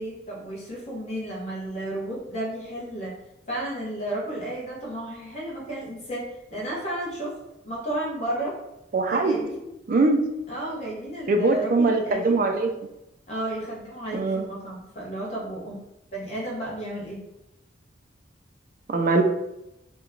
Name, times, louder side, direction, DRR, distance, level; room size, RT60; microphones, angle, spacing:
voice 1, 0.0-3.1 3.5-7.3 7.6-8.6 9.1-9.7 10.5-12.4 13.3-15.8 16.1-17.2, right 1 dB, 35° left, -4 dB, 1.0 m, -32 dB
voice 2, 8.9-9.5 9.9-10.2 11.3-12.7 14.1-14.5 18.9-19.2, right 3 dB, 45° right, 4 dB, 0.4 m, -22 dB
2.9 x 2.2 x 3.7 m, 0.88 s
head